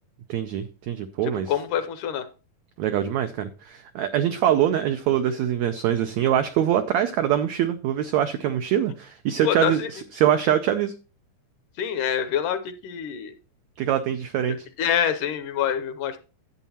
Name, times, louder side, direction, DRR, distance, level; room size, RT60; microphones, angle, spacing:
voice 1, 0.3-1.5 2.8-10.9 13.8-14.7, right 10 dB, 90° right, 8 dB, 1.5 m, -24 dB
voice 2, 1.2-2.3 9.4-9.9 11.8-13.3 14.8-16.2, left 9 dB, 75° left, 10 dB, 2.1 m, -26 dB
11.0 x 8.4 x 2.8 m, 0.33 s
omnidirectional pair, 4.0 m